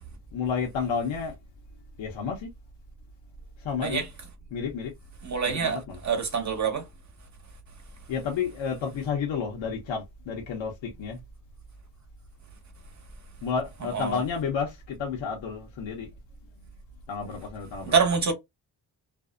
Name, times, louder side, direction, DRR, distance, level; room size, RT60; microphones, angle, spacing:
voice 1, 0.3-1.4 2.0-2.5 3.6-4.1 4.5-4.9 5.5-6.0 8.1-11.2 13.4-16.1 17.1-18.0, left 6 dB, 80° left, 0.9 m, -31 dB
voice 2, 5.2-5.8 6.0-6.9 13.9-14.2 17.9-18.3, right 6 dB, 40° right, 1.0 m, -25 dB
2.6 x 2.0 x 2.4 m
cardioid pair, 80°, 45 cm